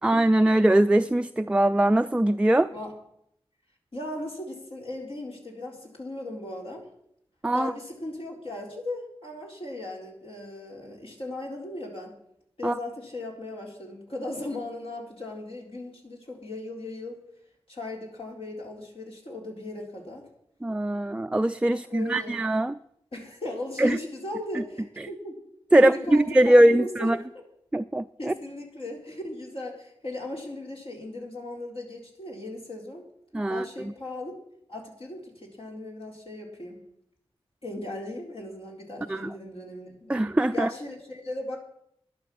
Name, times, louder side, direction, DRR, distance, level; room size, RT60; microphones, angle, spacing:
voice 1, 0.0-2.7 7.4-7.7 12.6-12.7 20.6-22.8 23.8-24.0 24.5-24.6 25.0-25.1 25.7-27.2 27.7-28.3 33.3-33.9 39.1-39.3 40.1-40.7, right 1 dB, 10° right, 9 dB, 0.4 m, -21 dB
voice 2, 3.9-6.8 7.5-12.2 12.6-17.2 17.7-20.3 21.8-22.4 23.1-25.4 25.8-27.1 27.3-27.4 28.2-33.0 33.5-34.3 34.7-36.8 37.6-40.2 40.5-41.6, left 1 dB, 60° left, -1 dB, 4.0 m, -37 dB
11.5 x 11.0 x 6.2 m, 0.75 s
cardioid pair, 45°, 11 cm